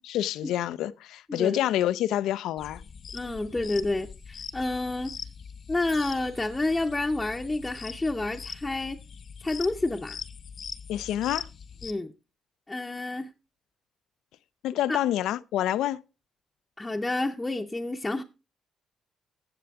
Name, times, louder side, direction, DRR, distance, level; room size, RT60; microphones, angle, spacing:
voice 1, 0.0-2.8 10.9-11.5 14.6-16.0, left 12 dB, 85° left, 0.4 m, -27 dB
voice 2, 1.3-1.6 3.1-5.1 5.7-9.0 9.4-10.2 11.8-12.1 12.7-13.3 14.9-15.0 16.8-18.2, left 2 dB, 15° left, 0.7 m, -29 dB
sound 1, 2.6-11.9, left 6 dB, 50° left, 0.7 m, -42 dB
Bicycle, 5.8-7.2 15.5-15.6, right 5 dB, 65° right, 3.9 m, -54 dB
14.5 x 6.7 x 3.5 m
cardioid pair, 90°, 0 cm